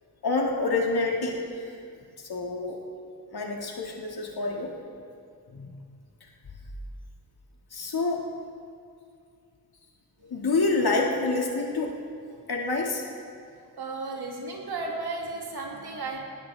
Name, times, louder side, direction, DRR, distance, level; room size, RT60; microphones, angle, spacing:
voice 1, 0.2-1.7 2.2-2.8 3.3-4.7 5.5-5.7 7.7-8.2 10.2-11.9 12.5-13.0, left 3 dB, 80° left, -1 dB, 2.2 m, -27 dB
voice 2, 13.8-16.2, right 3 dB, 85° right, -1 dB, 2.5 m, -34 dB
19.5 x 17.5 x 3.5 m, 2.3 s
cardioid pair, 55°, 38 cm